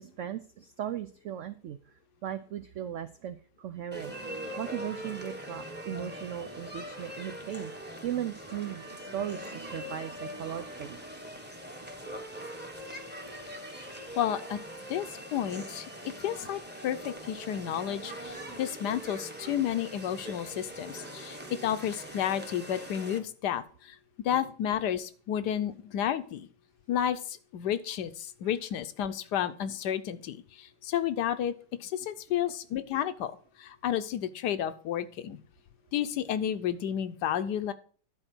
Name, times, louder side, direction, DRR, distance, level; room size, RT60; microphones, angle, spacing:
voice 1, 0.0-1.8 2.2-7.7 8.0-11.0, right 10 dB, 80° right, 11 dB, 0.6 m, -37 dB
sound 1, 3.9-23.2, equal, 5° right, 0.9 m, -42 dB
voice 2, 14.2-14.6 14.9-15.8 16.2-23.9 24.2-26.5 26.9-31.5 31.8-33.3 33.6-35.4 35.9-37.7, left 10 dB, 75° left, 12 dB, 1.3 m, -31 dB
11.0 x 4.4 x 6.0 m, 0.42 s
omnidirectional pair, 1.8 m